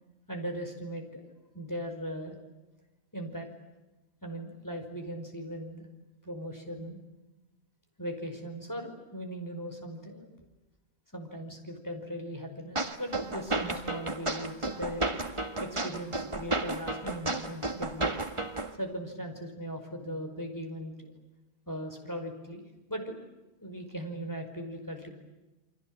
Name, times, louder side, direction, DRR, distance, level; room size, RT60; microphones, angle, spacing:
voice 1, 0.3-1.3 1.5-2.4 3.1-3.5 4.2-5.9 6.2-7.0 8.0-10.3 11.1-15.1 15.6-18.1 18.8-21.1 21.7-22.6 22.9-23.2 23.6-25.1, equal, 15° left, 4 dB, 5.4 m, -39 dB
sound 1, 12.8-18.7, right 2 dB, 30° right, 1.9 m, -32 dB
29.5 x 25.0 x 7.9 m, 1.1 s
omnidirectional pair, 1.1 m